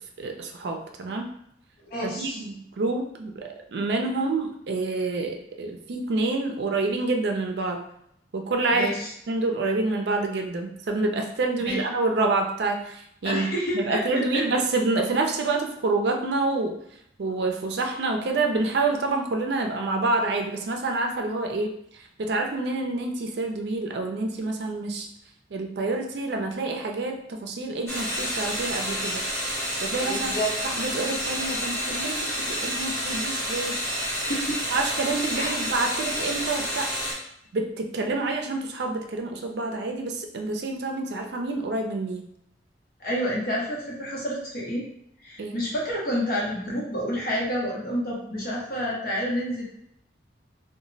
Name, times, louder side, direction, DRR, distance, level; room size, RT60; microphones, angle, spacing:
voice 1, 0.2-1.3 2.0-7.9 8.3-8.9 9.3-13.5 13.7-16.8 17.2-21.7 22.2-25.1 25.5-29.2 29.8-30.3 30.6-33.8 34.7-36.9 37.5-42.2 45.4-45.6, right 3 dB, 65° right, 3 dB, 0.4 m, -27 dB
voice 2, 1.8-2.4 8.7-9.1 11.6-11.8 13.2-14.5 30.0-30.6 34.2-34.6 35.3-35.5 43.0-44.9 45.2-49.7, equal, 55° left, -4 dB, 0.8 m, -29 dB
sound 1, 27.9-37.1, equal, 15° left, 0.8 m, -29 dB
2.1 x 2.0 x 3.8 m, 0.75 s
head